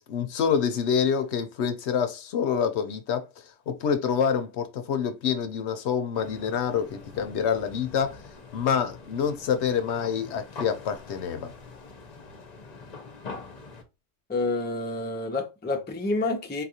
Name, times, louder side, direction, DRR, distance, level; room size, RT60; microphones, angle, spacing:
voice 1, 0.0-3.3 3.7-8.2 8.5-11.5, left 7 dB, 75° left, 0.9 m, -27 dB
sound 1, 6.1-13.8, left 4 dB, 45° left, 0.7 m, -44 dB
voice 2, 14.3-16.6, left 2 dB, 15° left, 0.4 m, -28 dB
4.0 x 2.4 x 2.8 m
omnidirectional pair, 1.2 m